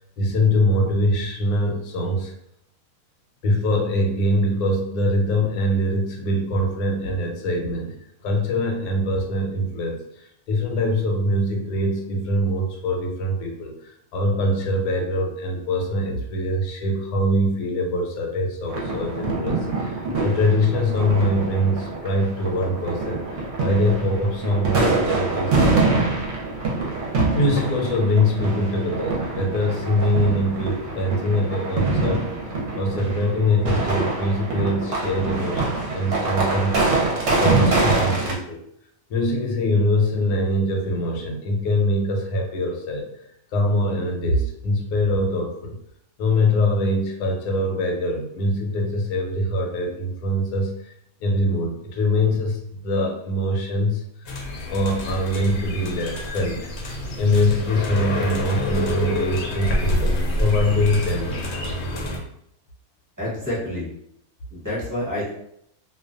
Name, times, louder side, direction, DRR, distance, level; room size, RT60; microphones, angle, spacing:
voice 1, 0.2-2.3 3.4-26.4 27.3-37.1 37.4-38.7 39.1-43.1 43.5-45.8 46.2-50.9 51.2-54.3 54.7-60.1 60.4-61.5, left 1 dB, 85° left, 1 dB, 1.1 m, -23 dB
sound 1, 18.7-38.3, right 3 dB, 60° right, 0.8 m, -25 dB
sound 2, 54.2-62.2, left 1 dB, 65° left, 0.7 m, -27 dB
voice 2, 63.2-63.9 64.5-65.3, left 1 dB, 15° right, -8 dB, 0.7 m, -28 dB
2.5 x 2.2 x 2.4 m, 0.72 s
omnidirectional pair, 1.5 m